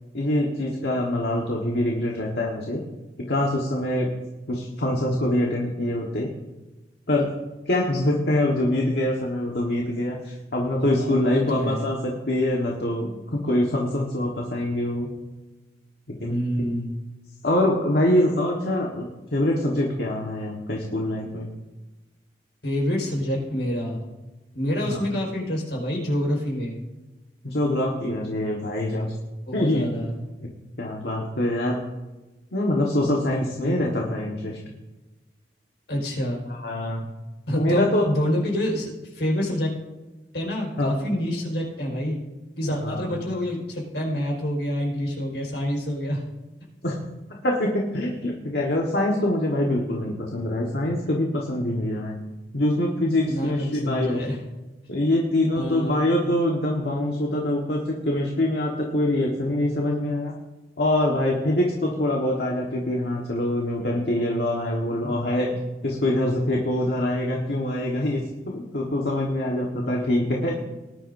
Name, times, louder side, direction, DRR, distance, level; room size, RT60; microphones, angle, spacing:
voice 1, 0.1-2.8 3.3-4.1 4.5-6.3 7.1-7.3 7.7-15.1 16.1-16.4 17.4-19.1 19.3-21.5 24.9-25.0 27.4-29.1 29.5-29.9 30.4-30.5 30.8-31.8 32.5-34.6 36.6-37.0 37.5-38.0 40.8-40.9 42.8-43.1 46.8-47.0 47.4-52.1 52.5-54.2 54.9-60.3 60.8-65.5 65.8-70.6, left 1 dB, 65° left, -1 dB, 1.5 m, -24 dB
voice 2, 10.8-11.9 16.3-16.9 22.6-24.0 24.5-26.8 29.5-30.2 33.6-33.8 35.9-36.4 37.5-39.7 40.3-42.2 42.6-46.2 53.3-54.4 55.5-56.2 65.0-65.1, equal, 85° left, -2 dB, 4.8 m, -27 dB
19.0 x 11.0 x 2.7 m, 1.1 s
head